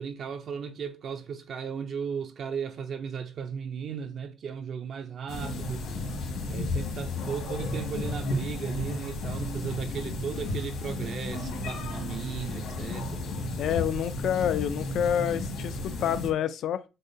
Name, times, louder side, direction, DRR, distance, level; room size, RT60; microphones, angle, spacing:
voice 1, 0.0-5.9 6.5-13.3, right 6 dB, 45° right, 0.4 m, -36 dB
sound 1, 5.3-16.3, left 2 dB, 75° left, 1.5 m, -33 dB
voice 2, 13.6-16.8, left 9 dB, 55° left, 0.3 m, -28 dB
6.3 x 2.2 x 2.6 m
cardioid pair, 155°, 0 cm